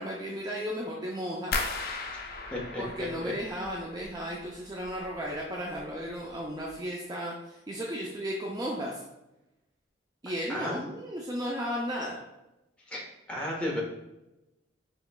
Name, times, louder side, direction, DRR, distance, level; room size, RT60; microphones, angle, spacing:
voice 1, 0.0-1.5 2.8-9.0 10.2-12.2, equal, 20° right, -3 dB, 0.5 m, -34 dB
sound 1, 1.5-4.4 4.7-5.4 5.7-6.1 6.6-6.7, left 3 dB, 50° left, 0.5 m, -36 dB
voice 2, 2.5-2.8 3.2-3.3 10.5-10.8 12.9-13.8, left 1 dB, 5° left, -4 dB, 1.0 m, -33 dB
5.8 x 3.0 x 2.3 m, 0.95 s
head